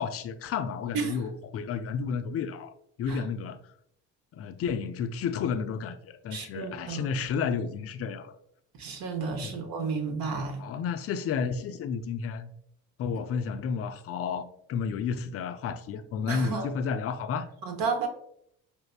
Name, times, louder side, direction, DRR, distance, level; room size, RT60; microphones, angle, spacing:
voice 1, 0.0-3.6 4.3-8.4 9.4-9.7 10.6-12.5 13.0-17.5, left 6 dB, 35° left, 0.4 m, -32 dB
voice 2, 6.3-7.1 8.8-10.6 16.3-16.7 17.6-18.1, right 5 dB, 55° right, 0.8 m, -32 dB
5.1 x 2.0 x 2.3 m
hypercardioid pair, 55°, 41 cm